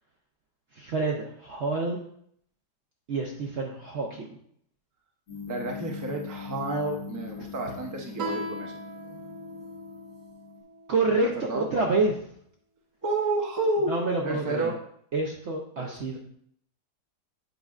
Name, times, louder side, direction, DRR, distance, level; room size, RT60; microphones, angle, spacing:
voice 1, 0.7-2.0 3.1-4.4 10.9-12.3 13.9-14.7 15.1-16.2, right 3 dB, 60° right, 0 dB, 0.7 m, -28 dB
sound 1, 5.3-10.6, left 7 dB, 65° left, 2.2 m, -42 dB
voice 2, 5.5-8.8 11.3-11.7 13.0-13.9 14.2-14.8 15.8-16.2, right 2 dB, 20° right, 1 dB, 0.5 m, -30 dB
Guitar, 8.2-11.4, right 1 dB, 90° right, 1.5 m, -39 dB
8.0 x 5.2 x 2.4 m, 0.67 s
omnidirectional pair, 1.7 m